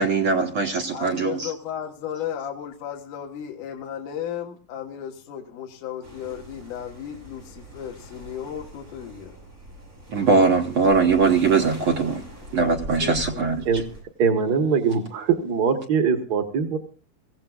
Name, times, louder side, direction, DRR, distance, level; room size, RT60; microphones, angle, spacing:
voice 1, 0.0-1.5 10.1-12.2 12.5-13.7, right 4 dB, 60° right, 1.5 m, -21 dB
voice 2, 0.9-9.3 12.6-12.7 13.0-13.4, left 9 dB, 70° left, 2.8 m, -34 dB
sound 1, 6.0-14.0, right 1 dB, 25° right, 8.4 m, -42 dB
voice 3, 14.2-16.8, right 6 dB, 75° right, 0.9 m, -22 dB
24.0 x 16.0 x 2.4 m
omnidirectional pair, 3.9 m